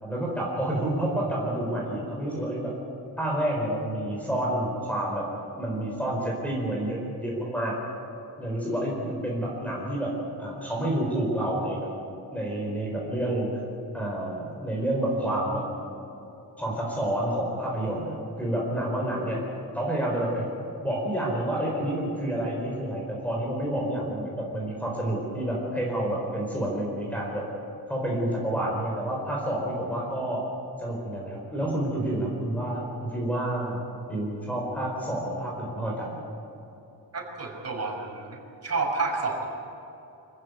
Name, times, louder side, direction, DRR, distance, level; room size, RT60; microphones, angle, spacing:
voice 1, 0.0-2.7 3.2-5.3 5.6-7.8 8.4-10.1 10.4-11.9 12.3-13.5 13.9-15.6 16.6-19.4 19.7-20.5 20.8-27.4 27.9-30.4 30.8-33.8 34.1-36.2, right 1 dB, 5° left, -2 dB, 4.6 m, -29 dB
voice 2, 37.1-39.5, right 3 dB, 40° right, 0 dB, 5.3 m, -30 dB
26.0 x 15.5 x 9.5 m, 3.0 s
wide cardioid pair, 165°, 39 cm